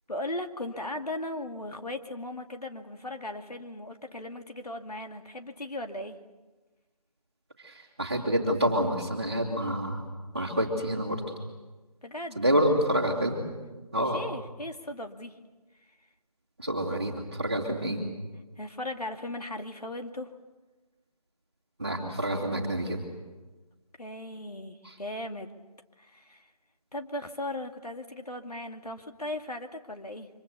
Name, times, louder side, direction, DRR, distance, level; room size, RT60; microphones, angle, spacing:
voice 1, 0.1-6.2 12.0-12.4 13.9-15.4 18.6-20.3 24.0-25.5 26.0-26.5 26.9-30.3, left 1 dB, 70° left, 5 dB, 2.4 m, -37 dB
voice 2, 7.6-10.0 10.3-11.2 12.4-13.4 13.9-14.2 16.6-18.0 21.8-23.0 24.8-25.0, equal, 20° right, -7 dB, 2.4 m, -28 dB
28.0 x 25.0 x 6.9 m, 1.2 s
figure-of-eight pair, 180°, 20 cm